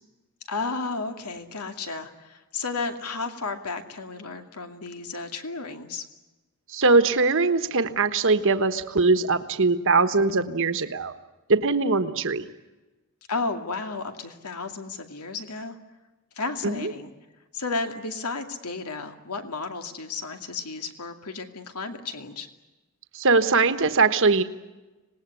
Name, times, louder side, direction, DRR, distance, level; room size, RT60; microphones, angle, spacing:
voice 1, 0.5-6.0 13.3-15.8 16.3-17.1 17.5-22.5, left 4 dB, 90° left, 6 dB, 2.5 m, -33 dB
voice 2, 6.7-11.1 11.5-12.4 16.6-16.9 23.1-24.4, right 3 dB, 60° right, 10 dB, 1.3 m, -21 dB
26.0 x 19.5 x 9.8 m, 1.1 s
head